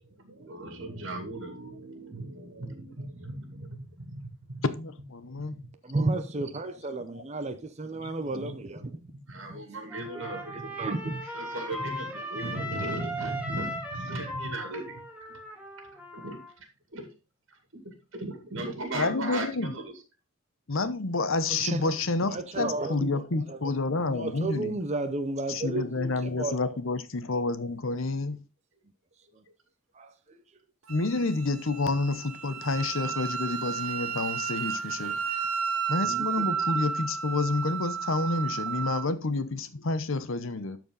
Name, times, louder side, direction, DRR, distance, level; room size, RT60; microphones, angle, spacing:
voice 1, 0.0-4.6 5.2-5.6 8.4-8.5 9.0-10.7 11.2-15.4 16.1-16.6 16.9-17.1 17.5-20.0 26.3-26.4, right 2 dB, 60° right, 2.4 m, -38 dB
voice 2, 4.7-5.5 8.0-8.1 18.9-19.7 20.7-24.8 25.5-28.4 30.9-35.2 35.9-40.8, left 3 dB, 70° left, 0.9 m, -29 dB
voice 3, 5.9-8.9 10.8-11.2 21.5-21.9 22.3-23.2 23.5-26.8 30.0-30.1 36.0-36.3, right 2 dB, 30° right, 0.8 m, -32 dB
Trumpet, 9.9-16.5, equal, 5° right, 1.9 m, -38 dB
Wind instrument woodwind instrument, 30.9-39.1, right 7 dB, 90° right, 1.2 m, -32 dB
12.5 x 4.6 x 4.0 m
head